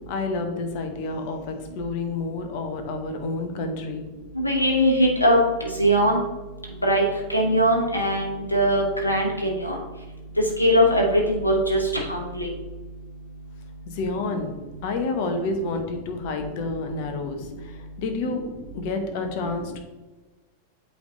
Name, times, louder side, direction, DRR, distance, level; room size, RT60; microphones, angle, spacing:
voice 1, 0.1-4.0 13.9-14.5 14.8-19.8, left 3 dB, 45° left, 6 dB, 0.9 m, -29 dB
voice 2, 4.3-6.2 6.8-7.0 7.3-9.8 10.6-11.8 12.1-12.5, equal, 85° left, -1 dB, 1.0 m, -21 dB
8.3 x 3.4 x 3.8 m, 1.2 s
figure-of-eight pair, 90°, 0 cm